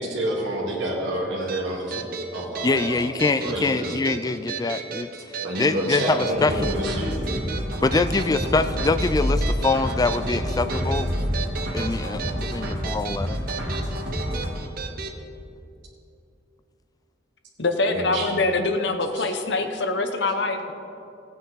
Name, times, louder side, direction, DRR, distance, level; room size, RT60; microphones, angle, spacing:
voice 1, 0.0-2.1 2.3-4.0 5.4-7.2 17.8-18.3 19.2-19.3, right 1 dB, 90° right, -4 dB, 2.2 m, -28 dB
sound 1, 1.5-15.2, right 5 dB, 55° right, 0.8 m, -35 dB
voice 2, 2.6-5.1 5.6-6.7 7.8-11.1 11.7-13.4, left 3 dB, 20° left, 11 dB, 0.3 m, -24 dB
sound 2, 6.3-14.5, equal, 70° right, 2.7 m, -28 dB
voice 3, 17.6-20.7, left 3 dB, 70° left, 6 dB, 0.9 m, -24 dB
15.5 x 9.2 x 4.0 m, 2.7 s
head